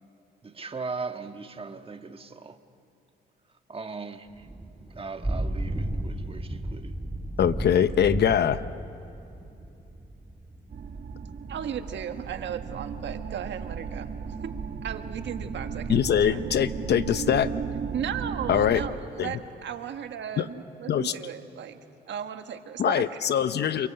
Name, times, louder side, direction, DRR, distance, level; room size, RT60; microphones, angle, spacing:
voice 1, 0.4-2.6 3.7-4.5 4.9-6.9, right 4 dB, 30° right, 7 dB, 1.5 m, -38 dB
Thunder / Rain, 4.3-13.8, right 1 dB, 10° right, 1.8 m, -35 dB
voice 2, 7.4-8.6 15.9-17.5 18.5-18.8 19.2-19.3 20.4-20.5 20.9-21.1 22.8-23.9, left 9 dB, 60° left, 13 dB, 0.8 m, -23 dB
sound 1, 10.7-18.9, right 6 dB, 50° right, 1.5 m, -35 dB
voice 3, 11.5-14.5 14.8-16.4 17.9-21.8 22.1-23.2, right 8 dB, 65° right, 7 dB, 1.6 m, -36 dB
28.5 x 24.0 x 7.8 m, 2.8 s
cardioid pair, 90°, 20 cm